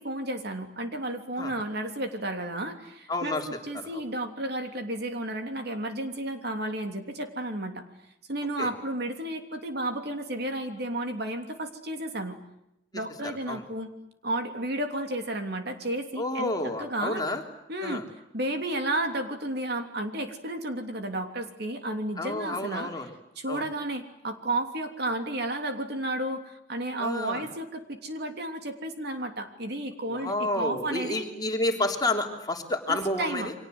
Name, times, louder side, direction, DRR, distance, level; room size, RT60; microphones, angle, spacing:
voice 1, 0.0-7.8 8.3-12.4 12.9-13.9 14.2-17.2 17.7-18.0 18.3-22.9 23.3-31.3 32.9-33.5, right 1 dB, 55° right, 5 dB, 3.2 m, -32 dB
voice 2, 3.1-3.5 3.9-4.0 8.6-8.7 13.5-13.6 16.2-17.4 17.8-18.0 22.2-23.1 23.5-23.6 27.0-27.5 30.1-33.5, left 2 dB, 20° left, 3 dB, 3.2 m, -30 dB
30.0 x 24.5 x 8.0 m, 0.83 s
head